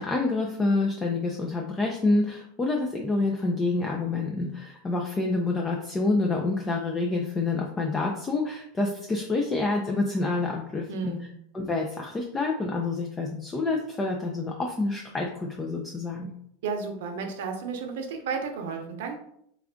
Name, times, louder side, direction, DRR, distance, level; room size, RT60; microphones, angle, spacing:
voice 1, 0.0-11.1 11.5-16.3, left 3 dB, 15° left, 0 dB, 0.4 m, -27 dB
voice 2, 10.9-11.3 16.6-19.2, right 5 dB, 75° right, 4 dB, 0.7 m, -32 dB
3.4 x 2.4 x 3.6 m, 0.71 s
supercardioid pair, 135°, 0 cm